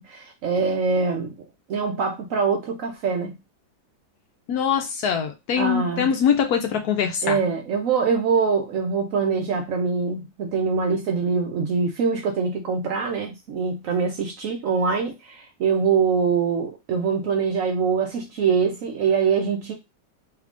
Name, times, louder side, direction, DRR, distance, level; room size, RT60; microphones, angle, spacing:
voice 1, 0.0-1.3 1.7-3.4 5.6-6.1 7.2-19.7, right 5 dB, 85° right, 0.7 m, -24 dB
voice 2, 4.5-7.4, left 7 dB, 70° left, 0.9 m, -23 dB
3.2 x 2.4 x 3.5 m
omnidirectional pair, 2.1 m